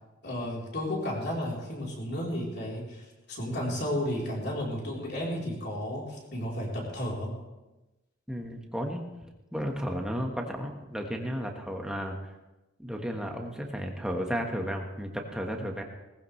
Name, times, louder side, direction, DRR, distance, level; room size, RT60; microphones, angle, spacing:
voice 1, 0.2-7.4, left 1 dB, 50° left, -3 dB, 3.8 m, -33 dB
voice 2, 8.3-9.0 9.5-12.2 12.8-15.8, equal, 5° right, 1 dB, 1.4 m, -33 dB
19.0 x 15.0 x 3.3 m, 1.0 s
head